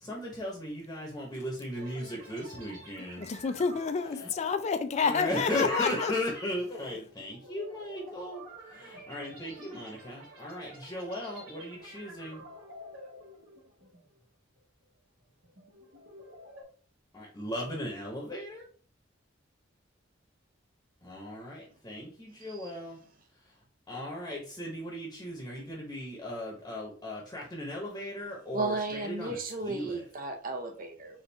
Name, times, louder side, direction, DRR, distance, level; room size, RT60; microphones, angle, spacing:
voice 1, 0.0-3.2 3.5-3.6 4.1-4.3 4.9-8.4 8.7-12.5 17.1-18.6 21.0-23.0 23.9-30.0, left 1 dB, 15° left, 0.9 m, -37 dB
sound 1, 1.7-14.2 14.6-14.8 15.3-16.6, right 1 dB, 80° right, 1.3 m, -50 dB
voice 2, 3.2-6.1, left 5 dB, 35° left, 0.4 m, -29 dB
voice 3, 22.4-22.7 28.5-31.2, right 2 dB, 45° right, 0.6 m, -34 dB
4.3 x 2.4 x 3.4 m
head